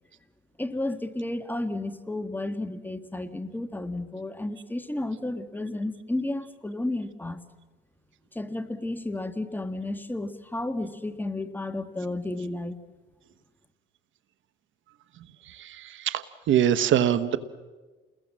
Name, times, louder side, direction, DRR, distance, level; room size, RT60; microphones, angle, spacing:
voice 1, 0.6-7.4 8.3-12.7, left 2 dB, 10° left, 9 dB, 1.7 m, -32 dB
voice 2, 16.0-17.4, right 10 dB, 75° right, 14 dB, 1.2 m, -22 dB
30.0 x 21.0 x 7.6 m, 1.3 s
cardioid pair, 90°, 20 cm